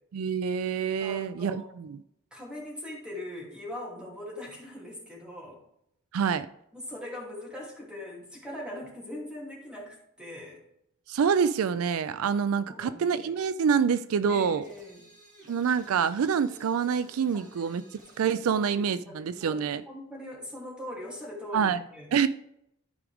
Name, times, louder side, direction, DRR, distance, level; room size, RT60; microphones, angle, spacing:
voice 1, 0.1-2.0 6.1-6.5 11.1-14.6 15.5-17.8 18.2-19.8 21.5-21.8 22.1-22.3, right 6 dB, 75° right, 0.4 m, -26 dB
voice 2, 1.0-1.7 2.3-5.6 6.7-10.6 12.6-13.3 14.3-15.0 17.3-17.7 18.5-22.1, left 1 dB, 5° right, 2.8 m, -41 dB
sound 1, 14.6-18.4, right 2 dB, 40° right, 1.9 m, -54 dB
13.0 x 4.9 x 3.5 m
head